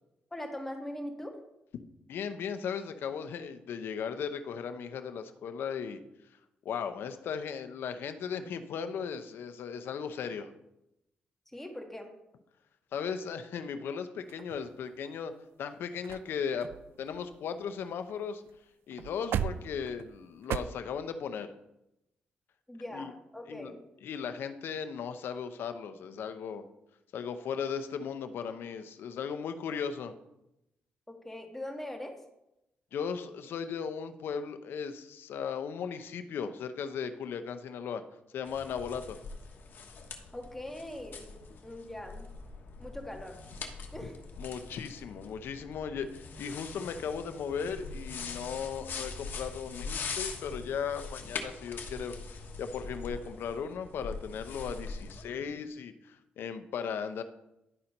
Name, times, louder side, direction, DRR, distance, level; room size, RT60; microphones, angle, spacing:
voice 1, 0.3-1.4 11.5-12.1 22.7-23.8 31.1-32.2 40.3-42.3 42.8-43.4 43.9-44.2, left 1 dB, 5° left, 2 dB, 1.5 m, -41 dB
voice 2, 2.1-6.0 6.6-10.5 12.9-15.3 15.6-16.7 17.0-18.4 18.9-21.5 22.9-23.1 23.5-23.7 24.0-26.6 27.1-30.1 32.9-38.0 38.3-39.2 44.4-52.1 52.6-57.2, left 7 dB, 80° left, 10 dB, 0.7 m, -37 dB
sound 1, 14.3-15.1 15.7-15.8 16.0-16.3 16.6-18.2 18.5-18.6 18.9-20.6, right 10 dB, 80° right, 0.4 m, -37 dB
sound 2, 38.5-55.2, left 4 dB, 65° left, 1.2 m, -42 dB
11.0 x 4.4 x 5.3 m, 0.87 s
cardioid pair, 100°, 4 cm